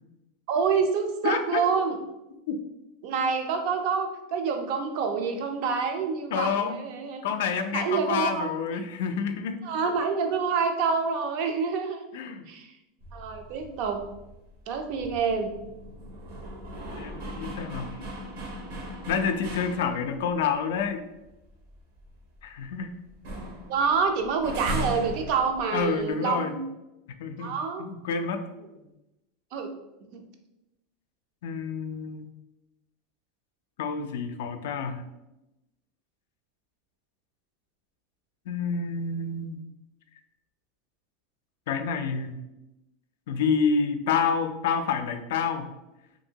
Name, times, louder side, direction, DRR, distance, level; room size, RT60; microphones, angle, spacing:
voice 1, 0.5-2.0 3.0-7.2 7.7-8.5 9.6-12.0 12.5-12.7 13.1-14.1 14.7-15.5 23.7-26.6 27.4-27.9 29.5-29.7 30.1-30.2, right 5 dB, 55° right, 5 dB, 0.4 m, -27 dB
voice 2, 1.2-1.6 2.5-2.6 6.3-6.8 7.2-9.6 12.1-12.5 16.9-17.9 19.1-21.0 22.4-22.9 25.7-26.5 27.2-28.4 31.4-32.3 33.8-35.1 38.5-39.6 41.7-42.4 43.3-45.7, left 6 dB, 80° left, 7 dB, 0.3 m, -28 dB
sound 1, 13.0-20.3 20.7-20.8 21.2-22.8 23.1-26.1, equal, 70° right, 0.9 m, -38 dB
2.8 x 2.6 x 2.7 m, 0.95 s
supercardioid pair, 140°, 0 cm